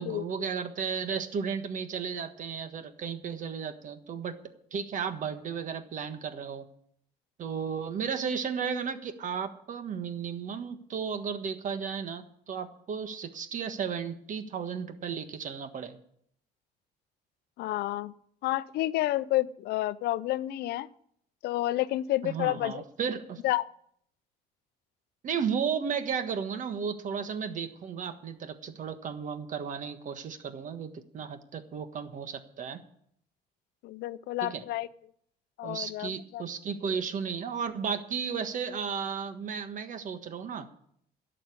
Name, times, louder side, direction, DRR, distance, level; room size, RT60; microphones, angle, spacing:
voice 1, 0.0-4.4 4.7-6.6 7.4-16.0 22.2-23.4 25.2-32.8 34.4-34.6 35.6-40.7, right 6 dB, 50° right, 9 dB, 1.5 m, -34 dB
voice 2, 17.6-18.1 18.4-20.9 21.4-22.8 23.4-23.7 33.8-34.9 35.6-36.4, left 15 dB, 75° left, 16 dB, 0.6 m, -30 dB
11.5 x 6.8 x 9.5 m, 0.68 s
cardioid pair, 110°, 17 cm